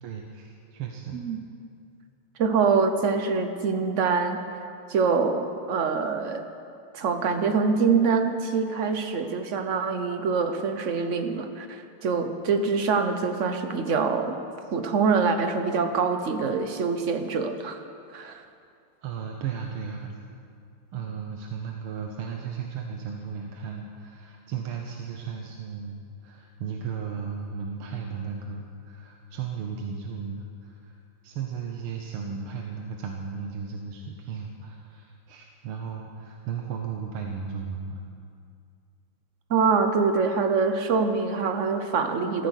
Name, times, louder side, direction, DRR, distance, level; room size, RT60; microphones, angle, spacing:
voice 1, 0.0-1.2 19.0-20.1 20.9-31.0 31.2-38.0, right 6 dB, 80° right, 2 dB, 1.9 m, -35 dB
voice 2, 2.4-4.4 4.9-6.5 6.9-14.4 14.7-17.8 18.1-18.4 39.5-42.5, right 5 dB, 50° right, 7 dB, 0.9 m, -25 dB
14.5 x 14.5 x 6.5 m, 2.4 s
omnidirectional pair, 2.4 m